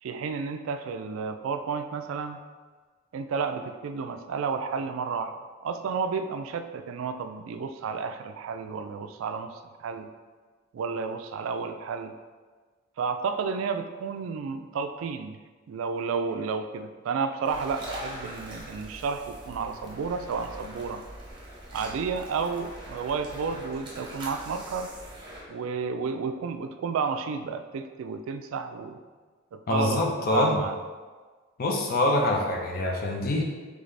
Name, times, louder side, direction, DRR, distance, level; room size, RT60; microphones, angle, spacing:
voice 1, 0.0-2.4 3.1-5.4 5.6-10.1 10.7-12.1 13.0-15.4 15.7-21.0 21.7-24.9 25.5-29.0 29.5-30.0 30.3-30.8, right 5 dB, 70° right, 9 dB, 0.3 m, -31 dB
sound 1, 17.4-25.4, right 1 dB, 25° right, 0.9 m, -42 dB
voice 2, 29.7-30.6 31.6-33.4, left 2 dB, 45° left, 1 dB, 0.6 m, -25 dB
3.9 x 3.3 x 3.2 m, 1.4 s
head